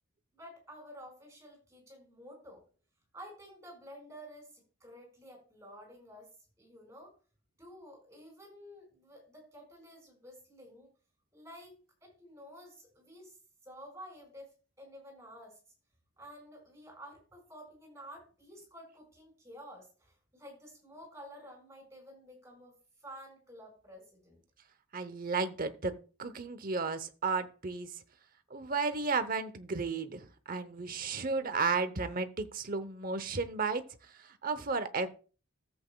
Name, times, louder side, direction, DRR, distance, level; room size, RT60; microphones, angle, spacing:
voice 1, 0.3-2.6 3.1-6.3 6.6-7.1 7.6-10.9 11.3-13.4 13.6-15.6 16.2-22.7 23.0-24.4, equal, 15° right, 0 dB, 5.0 m, -51 dB
voice 2, 24.9-25.9 26.2-28.0 28.5-33.8 34.1-35.1, right 4 dB, 40° right, 11 dB, 0.8 m, -33 dB
14.0 x 8.0 x 2.3 m, 0.37 s
head